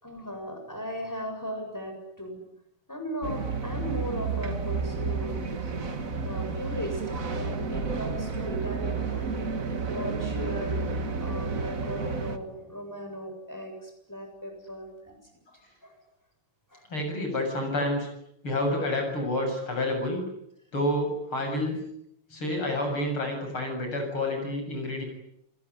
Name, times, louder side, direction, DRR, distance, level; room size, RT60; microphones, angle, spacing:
voice 1, 0.0-2.4 2.9-5.3 6.2-9.5 9.9-10.9 11.2-15.1 15.8-15.9 16.7-16.9, equal, 5° left, 4 dB, 7.4 m, -37 dB
sound 1, 3.2-12.4, right 4 dB, 40° right, 2.1 m, -31 dB
voice 2, 16.9-18.1 18.4-20.2 20.7-21.8 22.3-25.0, left 1 dB, 70° left, 4 dB, 8.4 m, -29 dB
28.0 x 21.0 x 9.7 m, 0.77 s
omnidirectional pair, 2.4 m